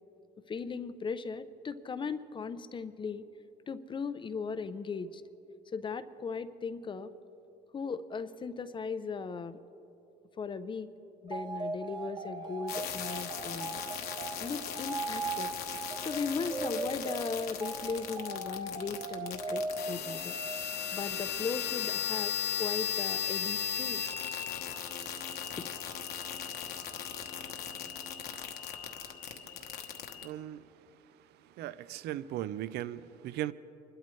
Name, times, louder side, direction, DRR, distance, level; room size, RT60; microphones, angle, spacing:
voice 1, 0.5-3.3 3.7-5.2 5.7-7.1 7.7-9.6 10.4-10.9 11.2-13.8 14.4-15.5 16.0-20.3 20.9-24.0 25.6-25.7, left 5 dB, 30° left, 0.5 m, -37 dB
sound 1, 11.3-21.0, right 3 dB, 25° right, 1.2 m, -39 dB
sound 2, 12.7-30.3, left 8 dB, 65° left, 1.1 m, -37 dB
voice 2, 29.2-33.5, right 13 dB, 75° right, 0.5 m, -40 dB
24.5 x 12.5 x 3.2 m
cardioid pair, 110°, 17 cm